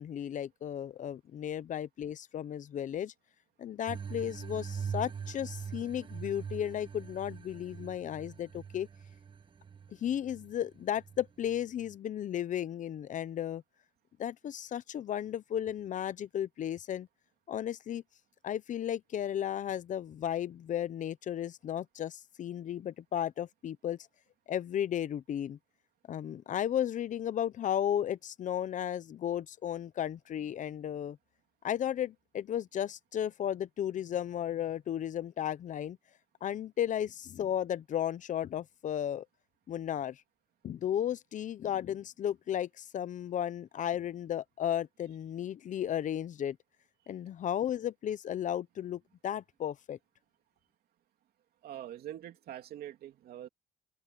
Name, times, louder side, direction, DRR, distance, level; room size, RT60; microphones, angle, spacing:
voice 1, 0.0-3.1 3.6-8.9 10.0-13.6 14.2-17.1 17.5-18.0 18.4-24.0 24.5-25.6 26.1-31.2 31.6-36.0 36.4-39.2 39.7-40.2 40.6-46.6 47.1-50.0, left 10 dB, 50° left, 0.8 m, -34 dB
sound 1, 3.9-11.9, right 6 dB, 30° right, 1.3 m, -42 dB
voice 2, 51.6-53.5, right 12 dB, 65° right, 2.8 m, -44 dB
open air
cardioid pair, 110°, 17 cm